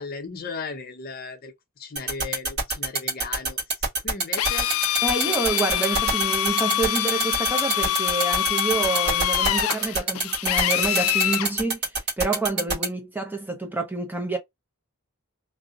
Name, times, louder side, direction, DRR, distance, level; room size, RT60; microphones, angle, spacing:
voice 1, 0.0-4.7, left 4 dB, 45° left, 0.6 m, -36 dB
sound 1, 2.0-12.9, right 3 dB, 50° right, 1.4 m, -24 dB
Drill, 4.4-11.5, left 12 dB, 80° left, 0.3 m, -25 dB
voice 2, 5.0-14.4, right 3 dB, 10° right, 0.5 m, -28 dB
2.7 x 2.0 x 2.4 m
head